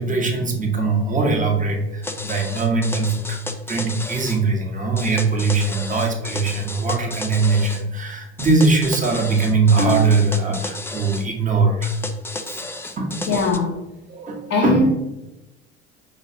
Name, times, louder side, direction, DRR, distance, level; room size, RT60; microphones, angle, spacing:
voice 1, 0.0-3.4 3.7-11.9 12.5-12.6 13.0-13.3 14.1-14.9, right 3 dB, 25° right, 1 dB, 1.2 m, -21 dB
sound 1, 2.0-4.4 5.0-7.8 8.4-11.3 11.8-13.6, left 2 dB, 10° left, 0.4 m, -33 dB
voice 2, 13.2-13.8 14.5-14.9, left 3 dB, 45° left, -1 dB, 0.8 m, -20 dB
5.5 x 3.0 x 2.8 m, 0.97 s
hypercardioid pair, 70°, 31 cm